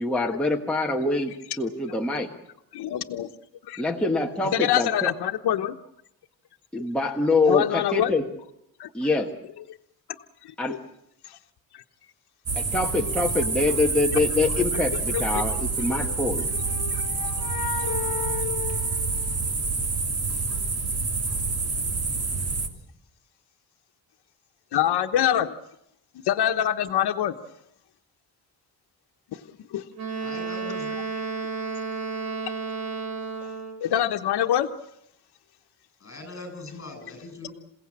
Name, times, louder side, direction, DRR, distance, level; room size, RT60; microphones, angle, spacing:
voice 1, 0.0-2.3 3.8-5.1 6.7-8.2 8.9-9.3 10.6-10.8 12.5-16.5, left 2 dB, 5° left, -1 dB, 1.4 m, -25 dB
voice 2, 2.7-3.3 3.7-3.8 4.5-5.8 7.5-8.1 8.8-8.9 10.4-10.5 11.2-11.4 11.7-11.8 15.1-15.4 16.9-17.1 24.7-25.5 26.2-27.3 29.3-29.4 29.7-29.8 33.8-34.7, left 11 dB, 90° left, 6 dB, 1.1 m, -25 dB
sound 1, 12.5-22.7, right 4 dB, 40° right, 2.8 m, -27 dB
sound 2, 15.9-19.8, left 9 dB, 60° left, 1.7 m, -35 dB
Wind instrument woodwind instrument, 30.0-33.9, right 4 dB, 80° right, 4.6 m, -32 dB
voice 3, 30.2-30.9 36.0-37.5, left 2 dB, 35° left, 6 dB, 7.8 m, -40 dB
28.0 x 17.0 x 8.8 m, 0.78 s
wide cardioid pair, 165°, 38 cm